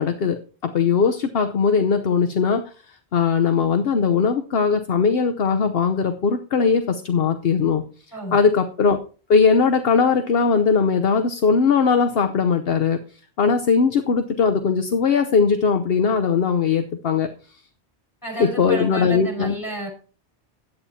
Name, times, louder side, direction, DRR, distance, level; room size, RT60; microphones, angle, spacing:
voice 1, 0.0-2.7 3.1-7.8 8.3-9.0 9.3-13.0 13.4-17.3 18.4-19.5, left 5 dB, 60° left, 8 dB, 1.0 m, -19 dB
voice 2, 18.2-19.9, right 2 dB, 15° left, 0 dB, 5.5 m, -31 dB
11.0 x 8.6 x 4.2 m, 0.38 s
omnidirectional pair, 1.1 m